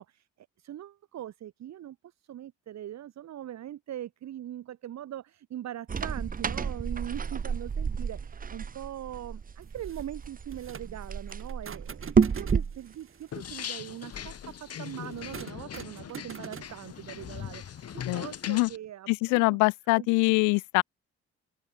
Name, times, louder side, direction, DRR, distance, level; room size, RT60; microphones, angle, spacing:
voice 1, 0.0-19.6 20.0-20.1, right 11 dB, 65° right, 2.1 m, -41 dB
sound 1, 5.9-12.8, right 6 dB, 30° right, 0.8 m, -30 dB
sound 2, 9.6-18.5, right 7 dB, 45° right, 3.3 m, -47 dB
sound 3, 13.3-18.8, left 9 dB, 55° left, 2.7 m, -40 dB
voice 2, 18.1-18.7 19.1-20.8, left 28 dB, 80° left, 0.5 m, -24 dB
open air
hypercardioid pair, 55°, 30 cm